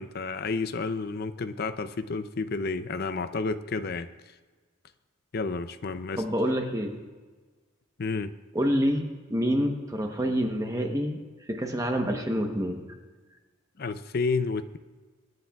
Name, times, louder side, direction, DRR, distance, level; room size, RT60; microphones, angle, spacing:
voice 1, 0.0-4.1 5.3-6.2 8.0-8.3 13.8-14.8, left 4 dB, 45° left, 11 dB, 0.5 m, -30 dB
voice 2, 6.2-6.9 8.5-11.2 11.5-12.9, equal, 15° right, 3 dB, 0.9 m, -27 dB
24.5 x 9.8 x 2.3 m, 1.4 s
head